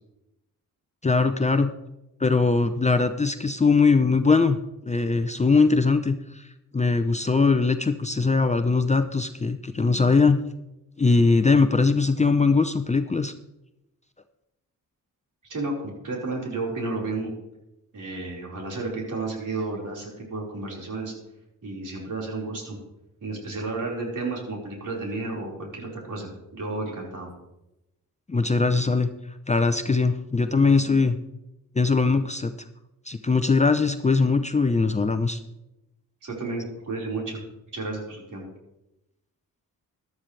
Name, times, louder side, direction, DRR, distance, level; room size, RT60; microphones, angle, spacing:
voice 1, 1.0-1.7 2.2-4.6 4.8-6.4 6.7-10.4 11.0-13.3 28.3-29.1 29.5-31.2 31.8-32.5 33.1-35.4, left 4 dB, 20° left, 9 dB, 0.6 m, -21 dB
voice 2, 15.5-17.3 17.9-21.1 21.6-22.8 23.2-27.3 36.2-37.4 37.7-38.4, right 3 dB, 60° right, -3 dB, 4.7 m, -32 dB
14.5 x 12.0 x 3.3 m, 0.92 s
cardioid pair, 80°, 36 cm